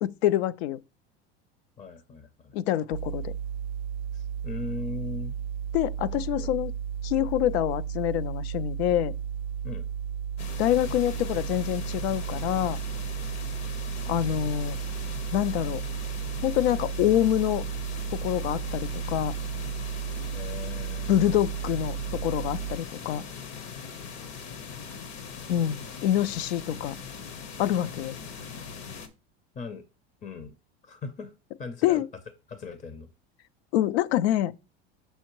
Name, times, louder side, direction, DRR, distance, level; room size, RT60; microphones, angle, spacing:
voice 1, 0.0-0.8 2.5-3.3 5.7-6.7 7.0-9.1 10.6-12.8 14.1-14.8 15.3-15.8 16.4-17.6 18.2-19.4 21.1-23.2 25.5-27.0 27.6-28.1 31.8-32.1 33.7-34.5, left 12 dB, 80° left, 0.5 m, -26 dB
voice 2, 1.8-2.6 4.1-5.4 6.1-6.5 9.6-9.9 20.3-21.1 29.6-29.8 30.2-30.5 30.8-31.3 31.6-32.0 32.5-33.1, left 4 dB, 25° left, 0.6 m, -39 dB
sound 1, 2.9-22.8, right 8 dB, 85° right, 0.5 m, -34 dB
sound 2, 10.4-29.1, left 6 dB, 60° left, 1.1 m, -41 dB
6.3 x 5.5 x 3.0 m
supercardioid pair, 110°, 31 cm